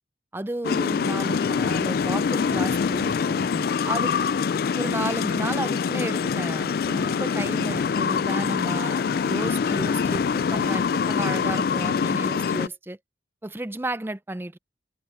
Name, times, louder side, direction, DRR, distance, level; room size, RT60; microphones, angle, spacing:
voice 1, 0.3-4.1 4.8-13.0 13.4-14.6, right 1 dB, 10° right, 0.4 m, -33 dB
sound 1, 0.6-12.7, left 6 dB, 55° left, 0.3 m, -24 dB
open air
head